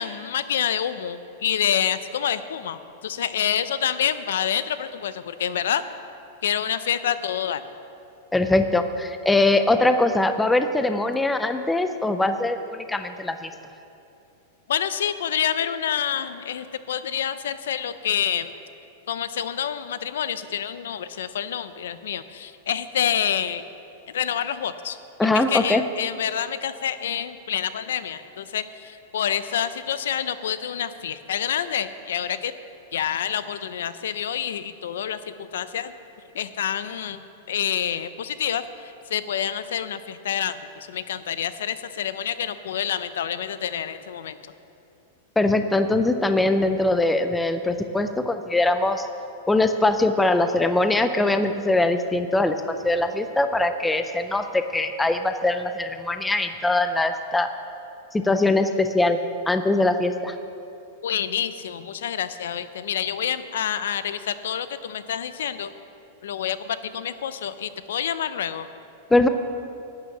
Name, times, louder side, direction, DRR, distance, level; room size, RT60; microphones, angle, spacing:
voice 1, 0.0-5.8 6.4-7.6 14.7-18.5 19.1-23.6 24.1-25.0 25.3-32.5 32.9-35.9 36.3-44.5 61.0-65.7 66.2-68.7, left 9 dB, 90° left, 13 dB, 0.6 m, -27 dB
voice 2, 8.3-13.5 25.2-25.8 45.4-49.1 49.5-57.5 58.1-59.2 59.5-60.3 69.1-69.3, left 2 dB, 5° left, 8 dB, 0.4 m, -22 dB
11.5 x 9.0 x 7.2 m, 2.7 s
supercardioid pair, 180°, 0 cm